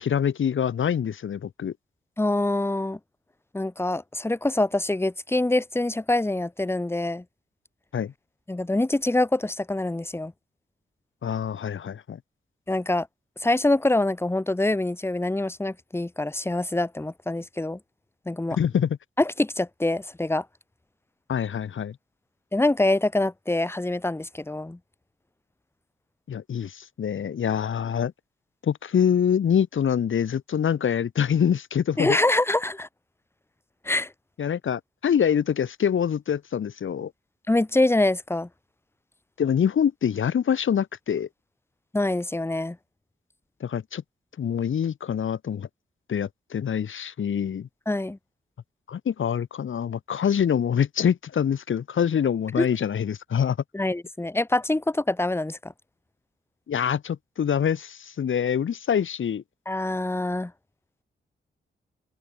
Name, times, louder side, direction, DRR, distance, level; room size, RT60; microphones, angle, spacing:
voice 1, 0.0-1.7 7.9-8.1 11.2-12.2 18.5-19.0 21.3-22.0 26.3-28.1 28.6-32.2 34.4-37.1 39.4-41.3 43.6-44.0 44.4-45.7 46.1-47.7 48.9-53.6 56.7-59.4, left 8 dB, 85° left, 3.6 m, -25 dB
voice 2, 2.2-3.0 3.5-7.2 8.5-10.3 12.7-13.1 13.4-17.8 18.3-18.6 19.2-20.4 22.5-24.8 32.0-32.9 33.9-34.1 37.5-38.5 41.9-42.8 47.9-48.2 52.6-52.7 53.7-55.7 59.7-60.5, left 2 dB, 10° left, 1.8 m, -25 dB
wide cardioid pair, 155°, 20 cm